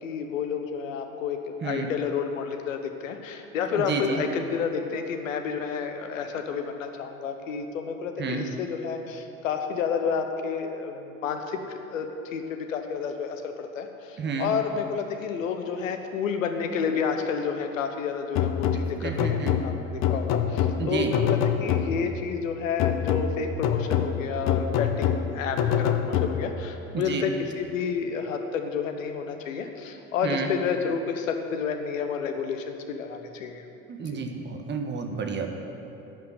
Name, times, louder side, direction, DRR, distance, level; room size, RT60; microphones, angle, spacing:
voice 1, 0.0-18.7 19.0-33.6, left 6 dB, 70° left, 6 dB, 1.1 m, -30 dB
voice 2, 3.7-4.2 8.2-8.5 14.2-14.5 19.0-19.5 20.7-21.1 26.9-27.3 30.2-30.5 33.9-35.8, right 5 dB, 25° right, 4 dB, 1.3 m, -30 dB
sound 1, 18.4-22.2 22.8-26.7, left 8 dB, 40° left, 0.8 m, -26 dB
12.0 x 5.8 x 9.1 m, 2.8 s
figure-of-eight pair, 65°, 41 cm